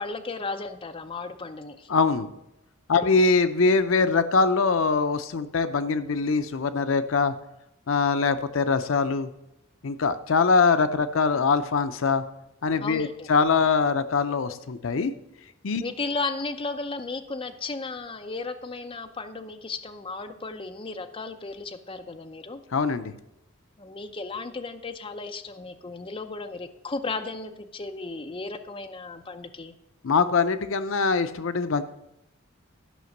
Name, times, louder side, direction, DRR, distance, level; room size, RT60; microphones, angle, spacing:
voice 1, 0.0-1.9 2.9-3.2 12.8-13.3 15.8-22.6 23.8-29.7, left 3 dB, 25° left, 7 dB, 0.6 m, -35 dB
voice 2, 1.9-2.3 2.9-7.3 7.9-9.3 9.8-12.2 12.6-15.1 15.6-15.8 22.7-23.1 30.0-31.8, left 4 dB, 70° left, 11 dB, 0.6 m, -23 dB
12.5 x 5.9 x 6.5 m, 0.86 s
head